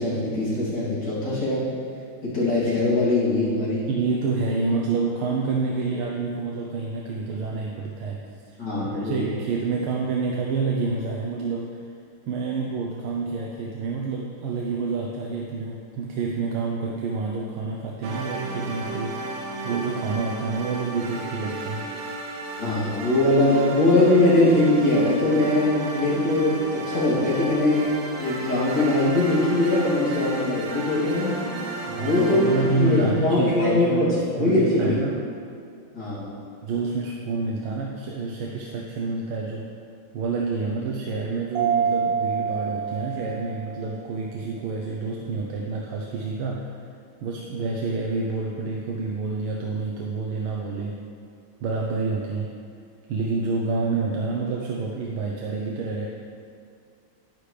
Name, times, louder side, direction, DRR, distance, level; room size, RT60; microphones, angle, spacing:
voice 1, 0.0-1.6 2.2-3.9 8.6-9.4 22.6-27.9 28.2-31.4 31.9-32.5 32.8-35.0 35.9-36.3, left 2 dB, 50° left, -10 dB, 3.5 m, -21 dB
voice 2, 3.9-8.6 8.9-11.8 12.3-19.3 19.6-21.9 31.9-35.2 36.6-39.7 40.1-46.8 47.2-51.0 51.6-52.5 53.1-56.1, right 4 dB, 85° right, -1 dB, 1.7 m, -28 dB
sound 1, 18.0-33.8, right 3 dB, 65° right, 1.5 m, -34 dB
Mallet percussion, 41.5-44.1, right 7 dB, 45° right, 1.6 m, -26 dB
10.5 x 10.0 x 3.4 m, 2.4 s
omnidirectional pair, 2.3 m